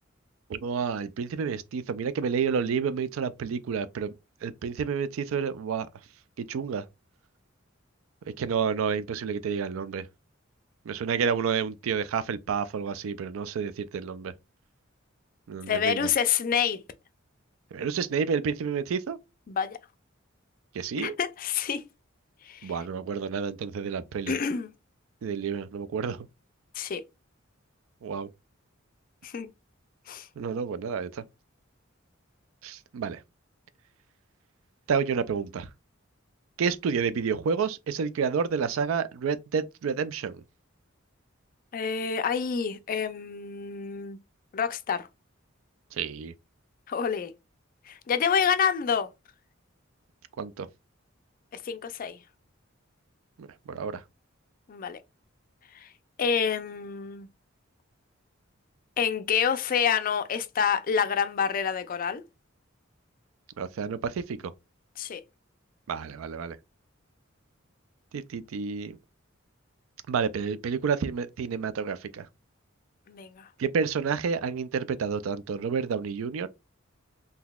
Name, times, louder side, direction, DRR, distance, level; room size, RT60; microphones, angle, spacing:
voice 1, 0.5-4.1 4.4-5.9 6.4-6.8 8.4-10.1 10.9-14.3 15.5-16.1 17.7-19.2 20.7-21.1 22.6-24.3 25.2-26.3 28.0-28.3 30.4-31.2 32.6-33.2 34.9-35.7 36.6-40.4 45.9-46.3 50.4-50.7 53.4-54.0 63.6-64.5 65.9-66.6 68.1-69.0 70.1-72.3 73.6-76.5, right 6 dB, 80° right, 0.4 m, -30 dB
voice 2, 15.7-16.8 19.5-19.8 21.0-21.8 22.4-22.7 24.3-24.7 26.7-27.0 29.2-29.5 30.1-30.3 41.7-44.2 44.5-45.1 46.9-47.3 47.9-49.1 51.5-52.2 54.7-55.0 55.7-55.9 56.2-57.3 59.0-62.2 65.0-65.2 73.1-73.5, left 7 dB, 45° left, 0.4 m, -28 dB
3.9 x 2.7 x 2.3 m
head